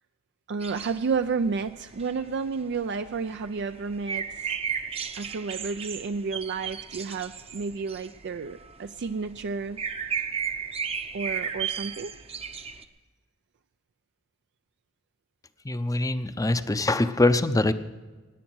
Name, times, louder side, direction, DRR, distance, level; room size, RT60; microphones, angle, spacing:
voice 1, 0.5-4.6 5.1-9.9 11.1-12.1, right 5 dB, 55° right, 10 dB, 0.4 m, -31 dB
sound 1, 0.6-12.8, right 6 dB, 30° right, 0.8 m, -35 dB
voice 2, 15.6-17.7, left 2 dB, 15° left, 11 dB, 0.6 m, -23 dB
17.5 x 9.9 x 6.2 m, 1.3 s
head